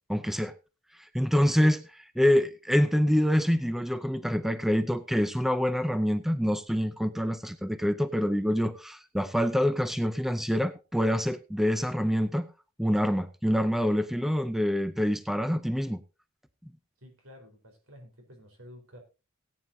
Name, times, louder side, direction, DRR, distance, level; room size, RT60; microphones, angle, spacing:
voice 1, 0.1-0.5 1.1-12.5 12.8-16.0, equal, ahead, 0.6 m, -26 dB
voice 2, 17.0-19.0, left 1 dB, 80° right, 4.4 m, -51 dB
18.5 x 9.1 x 2.7 m
head